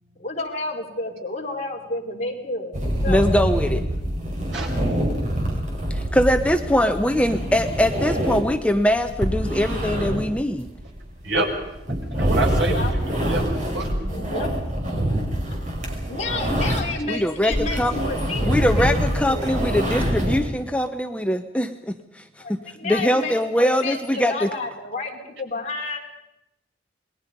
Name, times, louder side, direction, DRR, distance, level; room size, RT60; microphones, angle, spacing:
voice 1, 0.2-2.8 3.0-3.3 12.7-12.9 14.1-14.5 16.1-19.5 22.4-26.0, left 2 dB, 40° left, 0 dB, 4.6 m, -30 dB
sound 1, 2.7-17.0 17.3-20.4, equal, 40° right, 5.4 m, -25 dB
voice 2, 3.1-3.9 5.9-10.7 17.1-17.9 18.4-22.2 22.8-24.5, equal, 5° left, 7 dB, 0.9 m, -22 dB
voice 3, 12.1-14.5, right 2 dB, 85° right, 1 dB, 6.0 m, -28 dB
28.5 x 21.5 x 5.3 m, 0.86 s
head